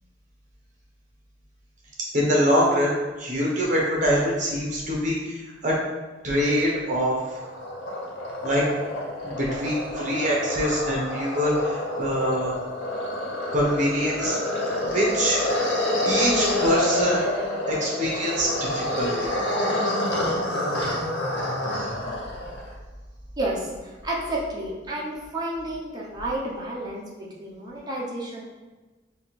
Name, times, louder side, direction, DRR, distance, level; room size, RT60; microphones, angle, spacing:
voice 1, 2.1-5.8 6.2-7.4 8.4-8.7 9.2-12.5 13.5-14.4 14.8-15.4 16.0-17.2 17.7-19.3 21.7-21.9, equal, 45° right, -3 dB, 1.2 m, -24 dB
sound 1, 7.0-22.7, left 1 dB, 75° left, 0.9 m, -28 dB
voice 2, 23.4-23.7 24.0-28.4, right 1 dB, 20° right, -5 dB, 0.8 m, -31 dB
4.0 x 2.5 x 4.1 m, 1.2 s
head